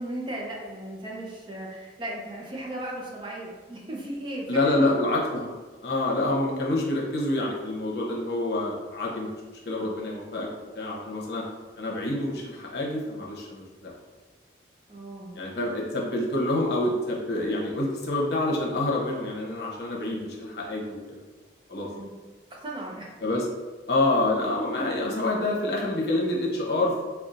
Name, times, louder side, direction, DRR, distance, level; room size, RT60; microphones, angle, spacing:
voice 1, 0.0-4.9 14.9-15.4 21.8-22.1 22.5-23.1, right 1 dB, 25° right, -3 dB, 0.6 m, -36 dB
voice 2, 4.5-5.6 5.8-9.3 9.6-10.5 10.7-11.4 11.8-13.9 15.3-21.2 21.7-21.9 23.2-23.5 23.9-27.0, left 2 dB, 65° left, -3 dB, 0.8 m, -27 dB
5.3 x 2.3 x 2.5 m, 1.3 s
head